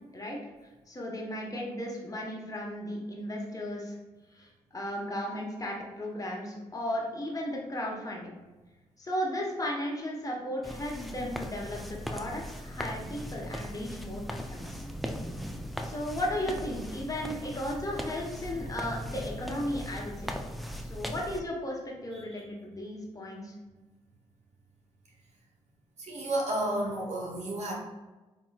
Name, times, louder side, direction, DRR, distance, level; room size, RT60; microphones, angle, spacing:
voice 1, 0.9-4.0 4.3-8.3 9.0-14.8 15.8-20.3 20.8-23.5, left 1 dB, 25° left, -2 dB, 1.0 m, -35 dB
sound 1, 10.6-21.4, equal, ahead, 0.4 m, -39 dB
voice 2, 26.0-27.7, right 1 dB, 55° right, -1 dB, 1.1 m, -31 dB
4.4 x 2.9 x 2.3 m, 1.2 s
supercardioid pair, 55°, 13 cm